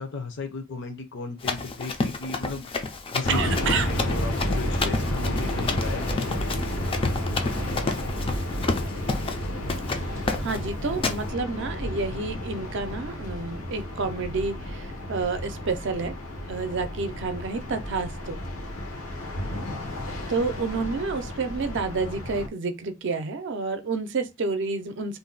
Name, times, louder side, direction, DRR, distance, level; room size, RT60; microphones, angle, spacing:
voice 1, 0.0-2.7 3.1-6.4 19.9-20.0, left 3 dB, 60° left, 0.6 m, -35 dB
Run, 1.4-9.4 9.7-10.0 10.3-10.6 11.0-11.2, left 3 dB, 25° left, 0.3 m, -30 dB
sound 1, 3.2-22.5, left 1 dB, 85° left, 0.9 m, -31 dB
voice 2, 3.3-3.9 10.4-16.1 16.5-18.4 20.3-25.2, right 4 dB, 60° right, 0.5 m, -29 dB
2.6 x 2.1 x 3.8 m
head